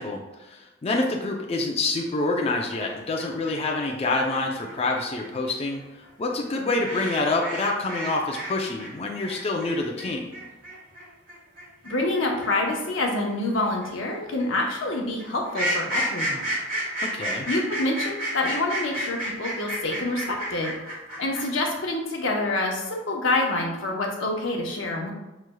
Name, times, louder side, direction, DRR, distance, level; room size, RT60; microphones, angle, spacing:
voice 1, 0.0-5.8 6.2-10.3 17.1-17.5, left 2 dB, 30° left, 0 dB, 0.4 m, -27 dB
sound 1, 2.5-8.5 8.8-21.7, equal, 45° right, 1.4 m, -32 dB
voice 2, 11.8-16.4 17.5-20.7 21.2-25.1, left 2 dB, 85° left, 0 dB, 0.8 m, -27 dB
5.8 x 3.1 x 2.2 m, 1.0 s
head